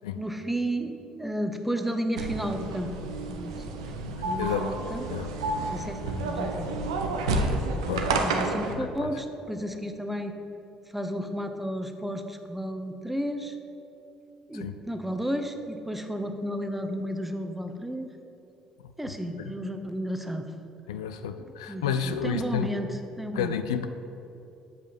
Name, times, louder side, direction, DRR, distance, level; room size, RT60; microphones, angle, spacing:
voice 1, 0.2-2.9 3.3-3.6 4.2-5.0 5.7-6.7 7.7-10.4 10.9-13.6 14.5-18.1 19.0-20.4 21.7-22.9 23.2-23.5, equal, 5° right, 6 dB, 0.9 m, -32 dB
sound 1, 2.2-8.7, right 2 dB, 85° right, 0.7 m, -30 dB
voice 2, 4.4-4.7 5.1-5.3 6.0-6.1 7.8-8.1 8.7-9.1 14.5-14.7 18.8-19.5 20.9-22.7 23.3-23.9, left 8 dB, 80° left, 9 dB, 0.4 m, -31 dB
7.7 x 5.4 x 6.9 m, 2.8 s
hypercardioid pair, 55°, 3 cm